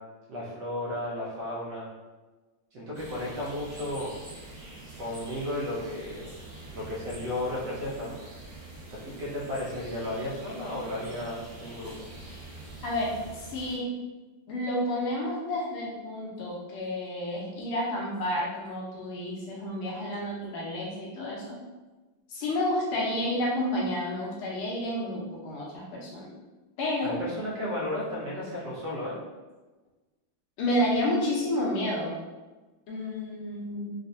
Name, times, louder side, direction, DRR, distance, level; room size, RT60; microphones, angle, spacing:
voice 1, 0.3-1.9 2.7-4.1 5.0-6.3 6.7-8.2 9.2-12.0 27.0-29.1, left 1 dB, 70° right, -6 dB, 1.1 m, -34 dB
sound 1, 2.9-13.8, right 2 dB, 25° right, 1.3 m, -45 dB
voice 2, 12.8-13.9 14.5-21.6 22.3-26.3 26.8-27.1 30.6-32.2 32.9-33.9, left 1 dB, 75° left, -4 dB, 1.6 m, -30 dB
4.0 x 2.2 x 2.6 m, 1.2 s
omnidirectional pair, 2.4 m